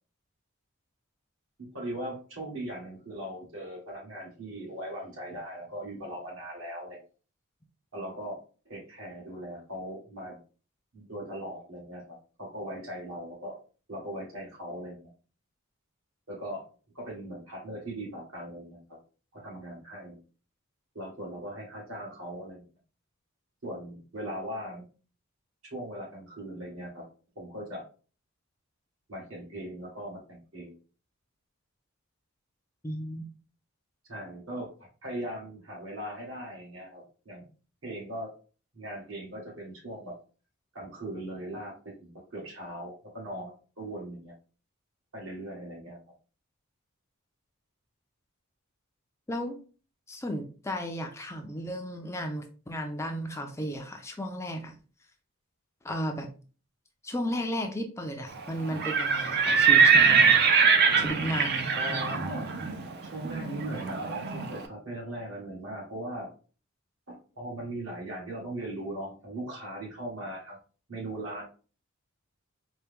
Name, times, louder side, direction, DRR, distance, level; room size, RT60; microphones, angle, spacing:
voice 1, 1.7-7.0 7.9-8.4 8.7-10.4 10.9-13.6 13.9-15.1 16.3-16.6 16.9-19.0 19.3-20.2 20.9-22.6 23.6-24.8 25.6-27.1 27.4-27.8 29.1-30.7 34.1-34.7 35.0-37.5 37.8-38.3 38.7-40.2 40.7-44.3 45.1-46.0 61.7-62.5 63.0-66.3 67.1-70.6 70.9-71.4, right 1 dB, 70° right, -3 dB, 1.9 m, -39 dB
voice 2, 32.8-33.3 49.3-49.6 50.1-54.7 55.8-56.3 57.0-60.4 61.0-62.3, equal, 15° left, 4 dB, 0.4 m, -34 dB
Livestock farm animals working animals, 58.7-64.5, right 6 dB, 50° right, 0.5 m, -23 dB
4.4 x 2.2 x 3.4 m, 0.37 s
head